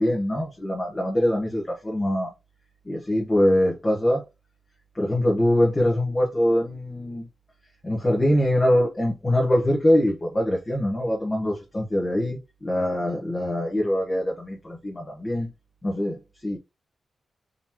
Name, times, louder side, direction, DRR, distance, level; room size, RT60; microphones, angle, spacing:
voice 1, 0.0-2.3 2.9-4.2 4.9-7.3 7.8-15.5 15.8-16.6, left 1 dB, 20° left, 0.9 m, -23 dB
3.8 x 2.9 x 2.9 m
wide cardioid pair, 175°, 0 cm